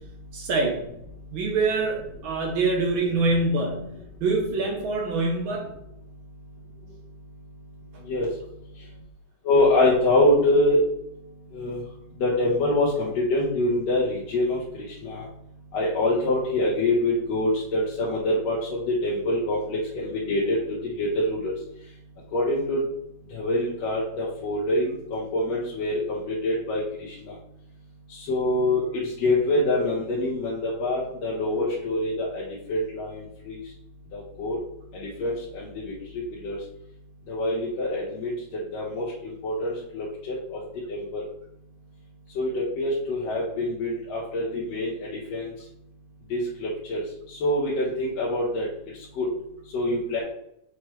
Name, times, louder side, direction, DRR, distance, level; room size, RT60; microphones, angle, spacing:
voice 1, 0.3-0.8 1.3-5.7, right 3 dB, 75° right, 1 dB, 1.1 m, -25 dB
voice 2, 9.5-10.8 11.5-11.8 12.2-14.6 15.0-15.2 15.7-20.6 21.0-21.5 22.3-22.8 23.3-26.8 27.2-27.3 28.3-28.8 29.2-32.4 32.7-33.2 33.5-33.6 34.1-34.6 35.2-35.9 36.4-36.6 37.3-38.3 38.7-39.0 39.4-40.6 40.9-41.2 42.4-44.9 45.3-45.5 46.3-47.0 47.4-48.7 49.2-49.3 49.7-50.2, left 1 dB, 60° left, -6 dB, 2.2 m, -25 dB
6.2 x 6.1 x 3.2 m, 0.78 s
omnidirectional pair, 3.6 m